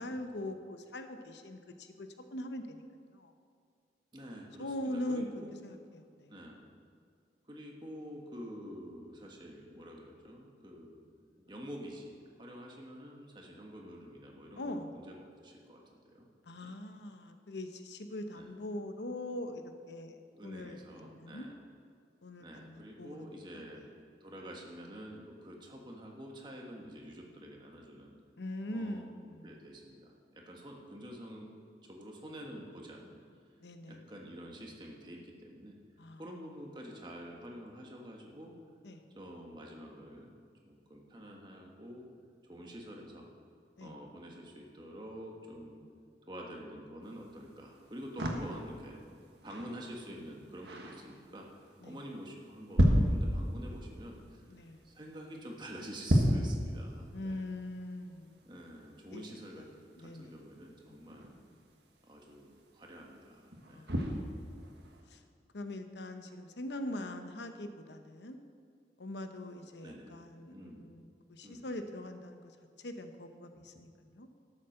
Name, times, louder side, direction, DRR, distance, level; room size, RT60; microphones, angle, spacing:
voice 1, 0.0-2.8 3.1-3.3 4.6-5.3 5.6-6.3 14.6-14.9 16.5-21.5 22.2-23.7 28.4-29.7 33.6-34.1 36.0-36.2 38.8-39.1 43.8-44.0 51.8-52.0 54.5-54.9 57.1-58.4 59.1-59.3 59.6-59.7 59.9-60.4 60.9-61.2 63.7-64.4 65.1-65.2 65.5-68.4 69.0-72.5 72.8-74.3, left 1 dB, 85° left, 7 dB, 0.9 m, -42 dB
voice 2, 4.1-5.5 6.3-6.6 7.5-11.0 11.5-15.8 16.1-16.3 16.6-16.7 18.3-18.5 20.4-21.6 22.4-23.9 24.2-28.1 28.7-29.1 29.4-31.5 31.9-33.2 33.9-35.8 36.2-38.5 39.1-40.3 40.7-42.0 42.5-43.3 43.8-45.8 46.3-49.0 49.4-51.5 51.8-54.4 54.8-57.4 58.4-59.7 60.0-61.4 62.0-63.9 69.8-70.1 70.5-70.9 71.4-71.7 73.5-73.6, equal, 25° right, 0 dB, 1.5 m, -48 dB
sound 1, 47.0-65.0, equal, 75° right, 1.5 m, -36 dB
12.5 x 7.4 x 6.6 m, 2.3 s
head